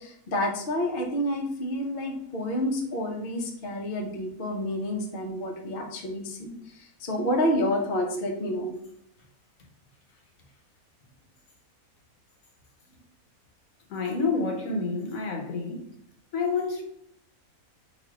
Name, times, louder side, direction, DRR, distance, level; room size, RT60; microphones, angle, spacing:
voice 1, 0.0-8.7, left 1 dB, 45° left, 0.8 m, -29 dB
voice 2, 13.9-15.8 16.3-16.8, left 4 dB, 70° left, 1.3 m, -28 dB
4.0 x 2.7 x 4.7 m
omnidirectional pair, 1.6 m